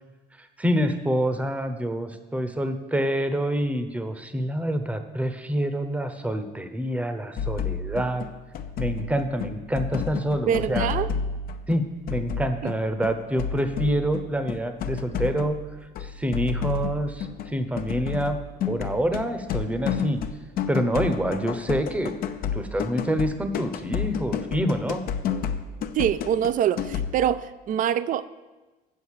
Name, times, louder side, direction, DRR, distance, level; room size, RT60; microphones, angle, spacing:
voice 1, 0.4-8.2 8.8-10.9 11.7-15.6 16.0-18.4 18.7-20.2 20.7-22.2 22.5-25.0, equal, 10° right, 8 dB, 0.8 m, -27 dB
sound 1, 7.4-27.2, left 6 dB, 60° left, 0.6 m, -31 dB
voice 2, 10.5-11.1 12.6-12.7 25.9-28.3, right 9 dB, 50° right, 16 dB, 0.4 m, -24 dB
7.7 x 6.4 x 7.3 m, 1.2 s
cardioid pair, 110°, 17 cm